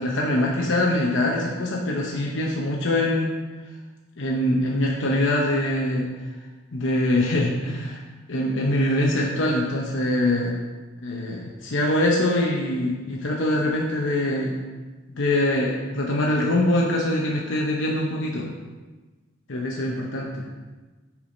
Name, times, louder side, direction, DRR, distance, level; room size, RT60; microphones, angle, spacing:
voice 1, 0.0-3.3 4.2-6.1 6.7-8.0 8.3-10.6 11.0-14.6 15.1-18.5 19.5-20.4, left 1 dB, 70° left, -2 dB, 0.9 m, -23 dB
7.1 x 4.9 x 5.1 m, 1.3 s
head